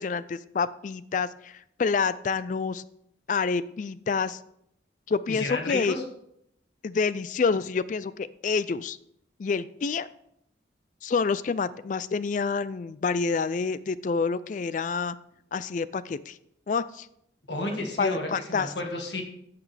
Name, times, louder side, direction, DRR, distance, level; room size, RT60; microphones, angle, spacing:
voice 1, 0.0-2.8 3.3-4.4 5.1-6.0 6.8-9.0 9.4-10.1 11.0-15.2 15.5-16.4 16.7-17.1 18.0-18.7, left 5 dB, 40° left, 16 dB, 0.3 m, -28 dB
voice 2, 5.3-6.0 17.5-19.2, left 2 dB, 65° left, 2 dB, 1.7 m, -31 dB
15.0 x 5.9 x 3.3 m, 0.75 s
head